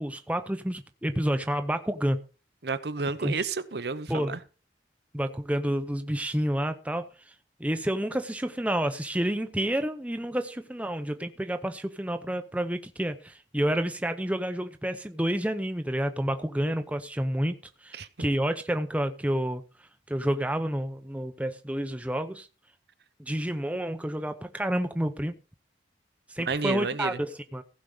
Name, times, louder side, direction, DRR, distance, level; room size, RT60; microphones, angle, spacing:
voice 1, 0.0-2.2 3.2-3.4 4.1-4.4 5.1-7.1 7.6-17.6 17.8-19.6 20.1-22.5 23.2-25.3 26.3-27.6, right 1 dB, 10° right, 0.7 m, -29 dB
voice 2, 2.6-4.4 17.9-18.1 26.5-27.2, right 4 dB, 60° right, 0.8 m, -31 dB
15.5 x 5.3 x 6.5 m
head